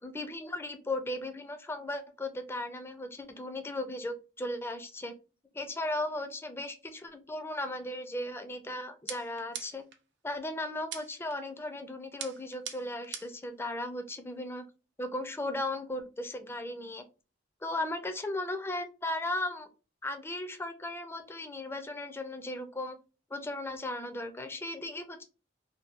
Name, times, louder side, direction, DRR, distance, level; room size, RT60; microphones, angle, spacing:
voice 1, 0.0-5.2 5.5-9.8 10.2-14.6 15.0-17.0 17.6-19.7 20.0-23.0 23.3-25.2, left 1 dB, 15° left, 7 dB, 0.4 m, -36 dB
sound 1, 9.1-10.0 10.9-11.4 12.2-13.5, right 8 dB, 65° right, 0.5 m, -42 dB
2.7 x 2.2 x 2.4 m, 0.31 s
head